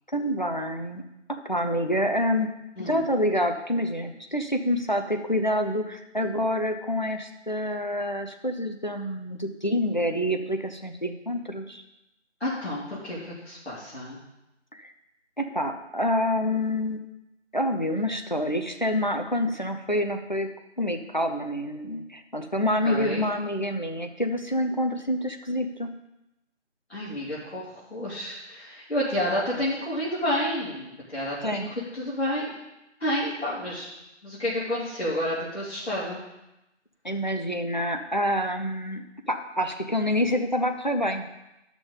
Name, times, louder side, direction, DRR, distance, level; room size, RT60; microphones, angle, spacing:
voice 1, 0.1-1.0 1.3-2.5 2.8-11.8 14.7-14.9 15.4-17.0 17.5-20.5 20.8-25.9 31.4-31.7 37.0-41.3, equal, 40° left, 6 dB, 0.6 m, -27 dB
voice 2, 2.8-3.1 12.4-14.2 22.8-23.3 26.9-31.6 31.9-32.5 33.0-33.9 34.2-36.2, left 1 dB, 60° left, -8 dB, 2.8 m, -30 dB
12.0 x 6.0 x 3.9 m, 0.93 s
figure-of-eight pair, 170°, 37 cm